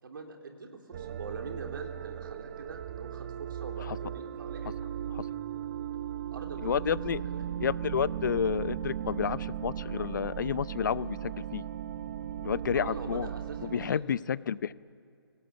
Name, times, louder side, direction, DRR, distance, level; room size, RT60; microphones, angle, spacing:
voice 1, 0.0-4.7 6.3-7.0 7.2-7.5 12.7-14.2, right 4 dB, 60° right, 3 dB, 3.3 m, -44 dB
sound 1, 0.9-13.9, right 10 dB, 40° right, 0.7 m, -37 dB
voice 2, 6.6-7.2 7.6-11.6 12.4-13.3 13.6-14.7, left 8 dB, 50° left, 20 dB, 0.6 m, -30 dB
25.0 x 17.5 x 8.1 m, 2.3 s
figure-of-eight pair, 135°, 13 cm